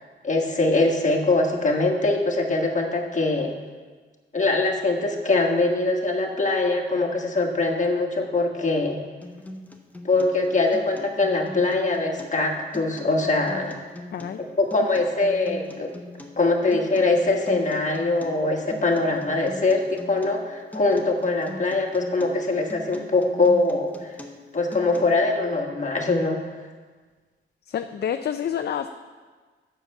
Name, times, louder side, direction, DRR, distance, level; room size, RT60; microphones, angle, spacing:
voice 1, 0.2-3.5 4.3-9.0 10.0-13.8 14.6-15.9 16.4-24.1 24.5-26.4, left 2 dB, 35° left, 1 dB, 1.5 m, -22 dB
Acoustic guitar, 9.2-25.2, left 1 dB, 5° left, 1.0 m, -41 dB
voice 2, 27.7-28.9, left 9 dB, 50° left, 8 dB, 0.4 m, -28 dB
7.7 x 6.7 x 6.6 m, 1.4 s
cardioid pair, 85°, 21 cm